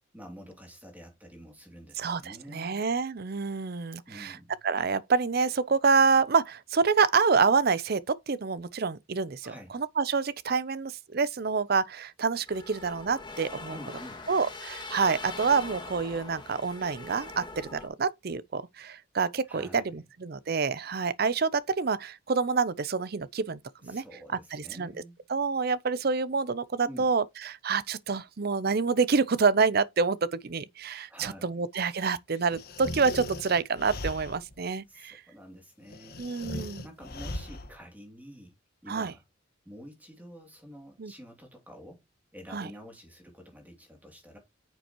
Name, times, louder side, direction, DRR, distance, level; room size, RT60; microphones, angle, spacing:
voice 1, 0.1-2.8 4.1-4.6 9.4-9.8 13.7-14.2 19.4-20.0 23.8-25.2 26.8-27.1 31.1-31.7 34.9-36.4 36.8-38.6 38.8-39.2 39.6-42.0 42.3-44.4, equal, 10° right, 2.8 m, -48 dB
voice 2, 2.0-4.4 4.6-13.8 14.3-24.0 24.5-24.9 25.3-35.2 36.2-36.8 38.9-39.1 41.0-41.1 42.5-42.7, right 5 dB, 50° right, 0.6 m, -27 dB
sound 1, 12.5-17.9, left 3 dB, 25° left, 2.0 m, -42 dB
sound 2, 32.5-34.6 35.9-37.8, left 2 dB, 50° left, 1.4 m, -38 dB
9.1 x 6.8 x 3.0 m
head